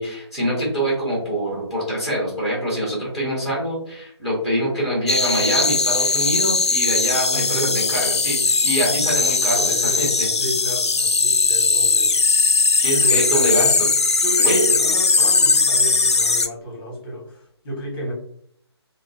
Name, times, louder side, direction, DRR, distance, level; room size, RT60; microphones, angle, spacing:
voice 1, 0.0-10.3 12.8-13.9 14.4-14.6, equal, ahead, -5 dB, 1.0 m, -24 dB
sound 1, 5.1-16.5, left 4 dB, 75° left, 0.4 m, -19 dB
voice 2, 7.3-7.8 9.6-10.0 10.4-12.2 13.0-13.5 14.2-18.1, equal, 25° left, -2 dB, 1.2 m, -31 dB
3.3 x 2.1 x 2.6 m, 0.64 s
figure-of-eight pair, 145°, 14 cm